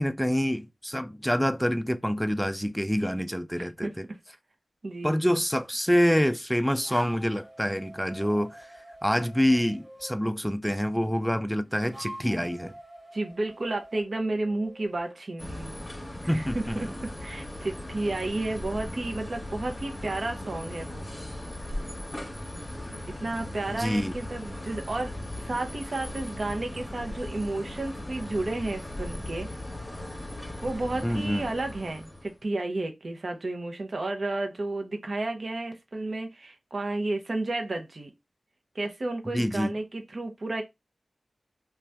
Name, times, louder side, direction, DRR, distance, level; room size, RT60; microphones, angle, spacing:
voice 1, 0.0-4.0 5.0-8.7 9.0-12.7 16.3-16.9 23.7-24.1 31.0-31.5 39.3-39.8, equal, ahead, 0.4 m, -26 dB
voice 2, 3.6-3.9 4.8-5.2 13.1-15.8 16.2-21.0 23.2-29.5 30.6-38.1 38.7-40.6, right 2 dB, 60° right, 0.7 m, -32 dB
sound 1, 6.7-10.2 11.5-15.2, right 1 dB, 35° right, 1.3 m, -46 dB
sound 2, 15.4-32.4, left 1 dB, 20° left, 0.9 m, -38 dB
2.6 x 2.3 x 3.3 m
cardioid pair, 45°, 0 cm